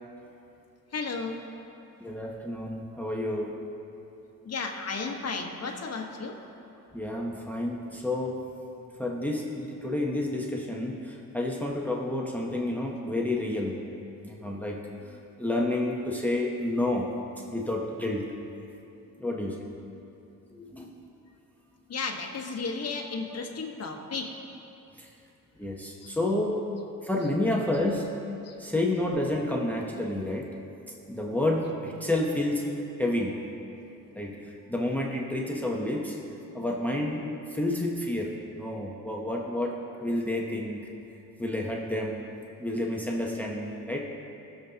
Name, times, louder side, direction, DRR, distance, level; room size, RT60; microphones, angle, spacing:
voice 1, 0.9-1.4 4.4-6.4 21.9-24.3 26.0-26.1 28.4-28.6, left 4 dB, 50° left, 1 dB, 1.3 m, -34 dB
voice 2, 2.0-3.5 6.9-8.4 9.0-13.8 14.2-17.1 17.4-18.3 19.2-19.7 20.5-21.0 25.0-25.1 25.6-26.6 27.0-28.1 28.6-30.5 31.1-33.4 34.1-37.2 37.5-40.8 41.4-42.3 42.6-44.0, left 1 dB, 5° left, -1 dB, 0.8 m, -30 dB
20.5 x 7.1 x 2.9 m, 2.8 s
cardioid pair, 125°, 32 cm